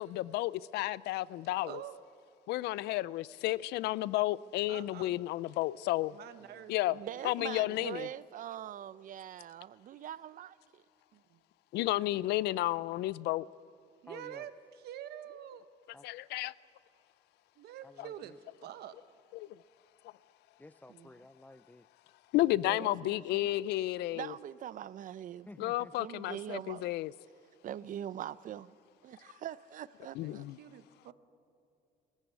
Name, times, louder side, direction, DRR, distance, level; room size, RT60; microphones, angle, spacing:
voice 1, 0.0-1.8 2.5-6.2 6.7-7.0 7.2-8.1 11.7-13.5 16.0-16.5 19.3-19.5 22.3-24.3 25.6-27.1 30.2-30.6, left 16 dB, 80° left, 0.5 m, -32 dB
voice 2, 1.6-2.0 4.7-5.2 6.1-6.8 7.0-7.9 11.1-11.4 14.0-15.7 17.6-18.4 18.6-19.0 30.2-31.1, right 11 dB, 70° right, 1.2 m, -47 dB
voice 3, 6.9-10.8 20.9-21.1 22.6-23.5 24.1-26.9 27.6-28.7 29.0-30.5, right 11 dB, 50° right, 0.6 m, -43 dB
voice 4, 14.1-14.5 15.9-16.0 17.8-18.4 20.6-21.9 25.5-25.9, left 2 dB, 10° left, 0.5 m, -53 dB
23.0 x 14.5 x 8.3 m
cardioid pair, 110°, 17 cm